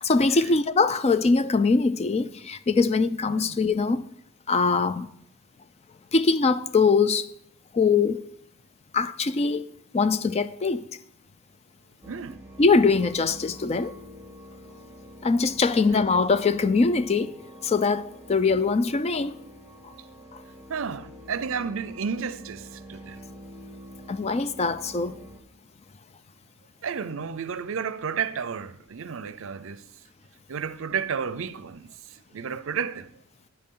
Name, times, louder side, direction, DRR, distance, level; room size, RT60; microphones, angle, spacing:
voice 1, 0.0-4.1 4.5-5.1 6.1-7.3 7.7-8.2 8.9-9.7 9.9-10.8 12.6-14.0 15.2-17.4 17.6-19.4 24.1-25.2, left 4 dB, 30° left, 0.4 m, -22 dB
voice 2, 3.3-3.6 12.1-12.4 20.7-23.2 26.8-29.8 30.5-33.1, right 6 dB, 65° right, 0.5 m, -32 dB
sound 1, 12.0-25.4, equal, 10° right, 1.1 m, -46 dB
12.0 x 9.5 x 3.8 m
head